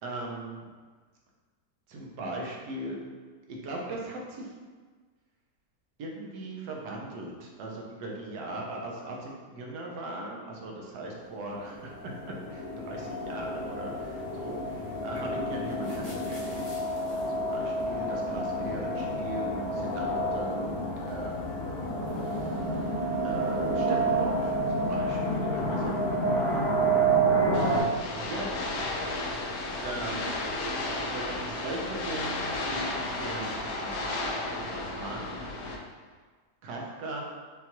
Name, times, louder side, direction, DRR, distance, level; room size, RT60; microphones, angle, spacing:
voice 1, 0.0-0.7 1.9-3.0 3.5-4.5 6.0-17.0 17.3-21.6 22.2-22.8 23.2-25.9 26.3-26.6 28.1-28.8 29.8-30.5 31.1-34.3 34.6-35.5 36.6-37.2, right 2 dB, 80° right, -1 dB, 1.3 m, -39 dB
sound 1, 11.6-27.8, right 2 dB, 30° left, 0.6 m, -29 dB
sound 2, 27.5-35.8, left 2 dB, 70° left, 1.0 m, -33 dB
5.6 x 2.3 x 2.9 m, 1.4 s
omnidirectional pair, 1.8 m